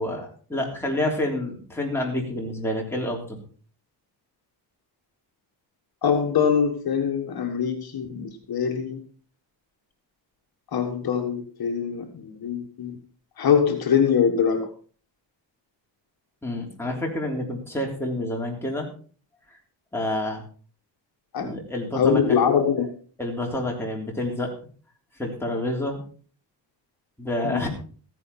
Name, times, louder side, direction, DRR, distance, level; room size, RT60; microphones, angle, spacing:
voice 1, 0.0-3.4 16.4-18.9 19.9-20.4 21.4-22.2 23.2-24.5 25.2-26.0 27.2-27.7, left 1 dB, 5° left, -1 dB, 3.4 m, -28 dB
voice 2, 6.0-9.0 10.7-13.0 13.4-14.7 21.3-21.5 22.0-22.9 27.4-27.6, left 7 dB, 55° left, 4 dB, 1.6 m, -23 dB
15.0 x 10.5 x 4.2 m, 0.43 s
wide cardioid pair, 145°, 43 cm